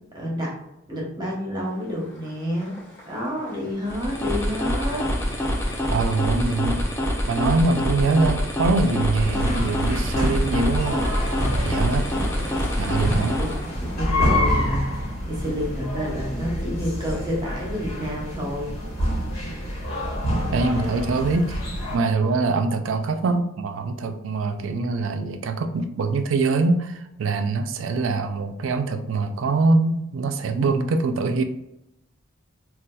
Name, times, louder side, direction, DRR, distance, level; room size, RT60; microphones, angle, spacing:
voice 1, 0.1-0.5 0.9-2.8 3.0-5.0 12.2-12.5 13.4-18.8, equal, 20° right, -3 dB, 0.9 m, -29 dB
sound 1, 1.5-18.5, left 1 dB, 35° left, 0.8 m, -46 dB
sound 2, 3.8-13.8, equal, 15° left, 0.4 m, -26 dB
voice 2, 5.9-6.9 7.3-11.1 11.6-12.1 12.8-13.4 20.5-21.6 21.9-31.4, right 3 dB, 70° right, 7 dB, 0.4 m, -23 dB
sound 3, 9.2-22.0, equal, 85° left, 1.3 m, -27 dB
4.0 x 2.4 x 2.2 m, 0.85 s
head